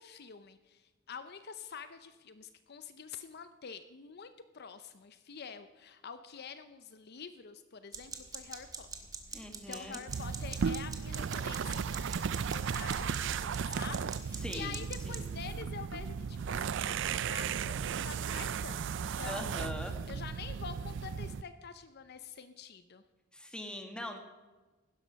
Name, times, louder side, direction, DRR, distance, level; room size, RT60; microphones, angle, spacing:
voice 1, 0.0-8.9 9.3-23.0, left 6 dB, 55° left, 11 dB, 0.6 m, -47 dB
sound 1, 7.9-15.3, right 4 dB, 20° right, 1.7 m, -44 dB
voice 2, 9.3-10.0 14.4-14.8 15.1-15.3 19.3-20.0 23.3-24.2, left 1 dB, 5° left, 4 dB, 1.7 m, -41 dB
sound 2, 10.1-21.4, right 6 dB, 65° right, 0.4 m, -35 dB
16.0 x 12.5 x 5.2 m, 1.2 s
head